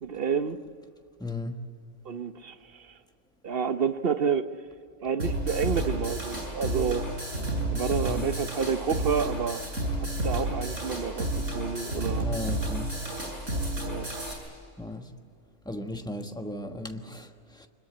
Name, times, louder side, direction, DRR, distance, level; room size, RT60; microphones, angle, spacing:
voice 1, 0.0-0.6 2.0-2.9 3.4-4.5 5.0-7.1 7.7-9.6 10.0-12.3 13.8-14.1, right 6 dB, 55° right, 1.0 m, -29 dB
voice 2, 1.2-1.6 8.1-8.3 12.2-12.9 14.8-15.1 15.6-17.7, left 2 dB, 5° left, 1.2 m, -36 dB
sound 1, 5.2-14.3, right 1 dB, 85° right, 8.5 m, -31 dB
25.0 x 21.5 x 8.5 m
omnidirectional pair, 1.3 m